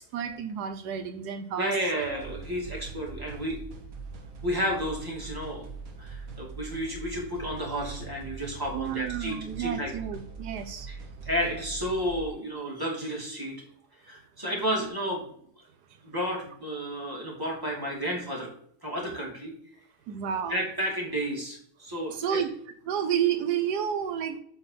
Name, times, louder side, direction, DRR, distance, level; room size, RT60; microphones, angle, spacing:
voice 1, 0.0-1.7 2.1-2.2 8.7-10.9 20.1-20.6 22.1-22.5 22.9-24.4, right 8 dB, 85° right, 8 dB, 1.3 m, -30 dB
voice 2, 1.6-3.6 4.4-5.7 6.0-9.9 10.9-11.0 11.2-13.5 14.1-15.2 16.0-18.5 18.8-19.5 20.5-22.4, equal, 15° right, -3 dB, 2.6 m, -32 dB
sound 1, 2.0-12.3, right 4 dB, 60° right, 1.5 m, -42 dB
8.0 x 4.4 x 5.8 m, 0.65 s
omnidirectional pair, 1.7 m